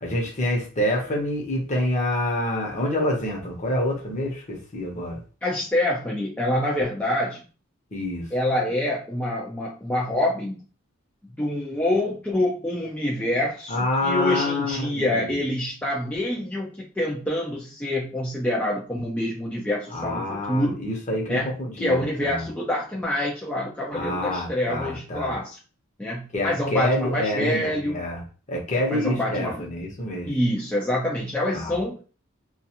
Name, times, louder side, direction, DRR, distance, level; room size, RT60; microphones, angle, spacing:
voice 1, 0.0-5.2 7.9-8.3 13.7-15.3 19.9-22.5 23.9-25.3 26.3-28.2 28.5-30.3 31.5-31.7, left 1 dB, 35° left, 0 dB, 0.9 m, -27 dB
voice 2, 5.4-7.4 8.3-10.6 11.4-20.9 21.3-21.5 21.8-25.6 26.0-28.0 28.9-29.6 30.3-32.0, left 1 dB, 5° left, -5 dB, 0.4 m, -26 dB
2.4 x 2.3 x 2.8 m, 0.37 s
head